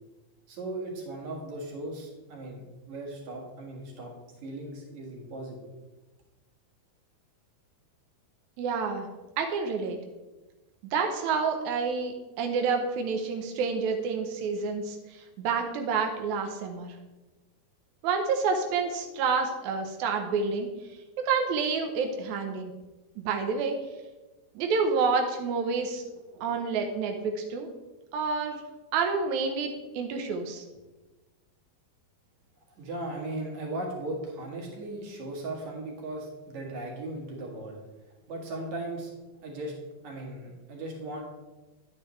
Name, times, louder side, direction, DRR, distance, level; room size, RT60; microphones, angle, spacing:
voice 1, 0.5-4.1 4.4-5.7 32.8-37.8 38.3-39.1 39.4-39.7 40.0-41.2, right 2 dB, 55° right, -1 dB, 2.7 m, -37 dB
voice 2, 8.6-9.1 9.4-10.0 10.9-16.9 18.0-20.7 21.2-22.7 23.2-23.8 24.5-26.0 26.3-27.7 28.1-28.6 28.9-30.6, right 5 dB, 80° right, 4 dB, 1.7 m, -28 dB
10.0 x 8.6 x 3.1 m, 1.1 s
omnidirectional pair, 4.3 m